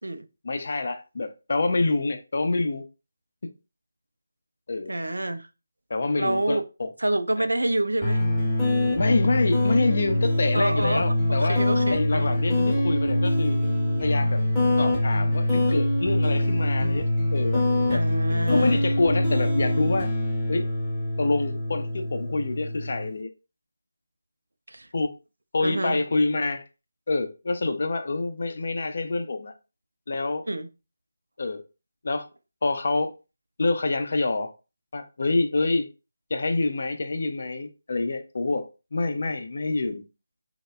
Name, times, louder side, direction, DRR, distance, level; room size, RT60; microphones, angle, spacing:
voice 1, 0.4-2.8 4.7-4.9 5.9-6.9 7.4-7.5 8.9-11.6 11.9-13.6 14.0-14.4 14.8-17.0 17.3-17.6 17.9-18.0 18.5-20.1 20.5-20.7 21.2-23.3 24.9-25.1 25.5-26.6 27.1-29.5 30.1-30.4 31.4-31.6 32.0-32.3 32.6-33.1 33.6-34.5 34.9-35.9 36.3-40.0, left 3 dB, 50° left, 0.4 m, -26 dB
voice 2, 4.9-5.5 6.2-6.6 7.0-8.2 10.5-12.3 17.9-18.9 24.7-24.9 25.6-26.0 30.5-30.7, right 1 dB, 75° right, 0.3 m, -28 dB
sound 1, 8.0-23.1, left 1 dB, 5° left, 0.7 m, -24 dB
3.0 x 2.0 x 2.2 m
figure-of-eight pair, 155°, 0 cm